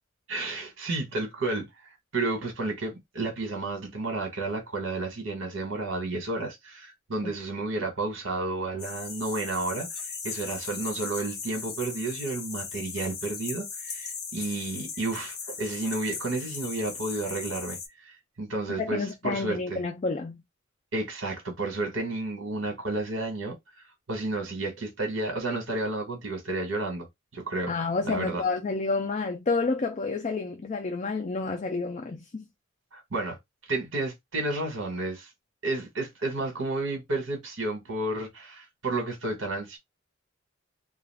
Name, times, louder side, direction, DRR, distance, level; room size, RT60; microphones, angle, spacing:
voice 1, 0.3-18.1 18.4-19.8 20.9-23.6 24.1-27.1 27.3-27.7 28.0-28.4 32.9-33.4 33.7-35.3 35.6-39.8, right 2 dB, 75° right, 1.2 m, -31 dB
sound 1, 8.8-17.9, left 5 dB, 55° left, 0.8 m, -38 dB
voice 2, 18.7-20.4 27.7-32.4, left 3 dB, 35° left, 0.4 m, -29 dB
2.4 x 2.3 x 3.3 m
head